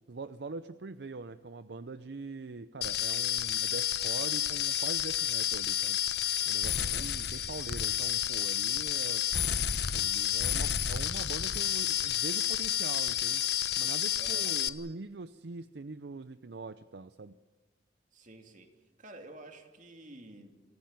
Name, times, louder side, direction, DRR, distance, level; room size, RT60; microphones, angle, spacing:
voice 1, 0.1-6.0 6.5-9.5 9.9-17.4, right 3 dB, 70° right, 13 dB, 0.6 m, -43 dB
sound 1, 2.8-14.7, left 10 dB, 65° left, 0.9 m, -30 dB
voice 2, 6.8-7.1 14.2-14.5 18.1-18.7 19.0-20.5, right 1 dB, 45° right, 5 dB, 2.8 m, -50 dB
25.5 x 16.5 x 9.1 m, 1.3 s
head